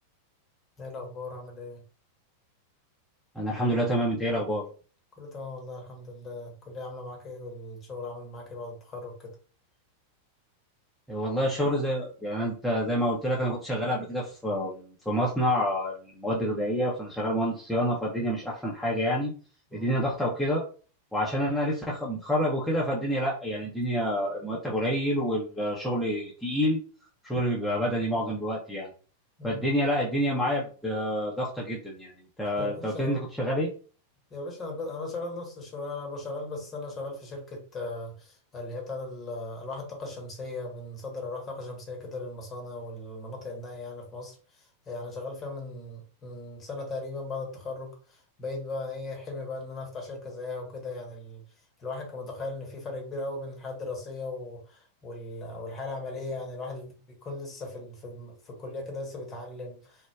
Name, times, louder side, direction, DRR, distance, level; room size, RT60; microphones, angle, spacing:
voice 1, 0.8-1.8 5.2-9.3 19.7-19.9 29.4-29.6 32.6-33.2 34.3-51.4 51.8-60.1, left 2 dB, 25° left, 1 dB, 0.9 m, -38 dB
voice 2, 3.3-4.6 11.1-19.3 19.7-20.6 21.1-26.8 27.2-28.9 29.4-32.1 32.4-33.7, equal, 5° left, -5 dB, 0.6 m, -28 dB
3.0 x 2.1 x 2.2 m, 0.39 s
figure-of-eight pair, 90°, 0 cm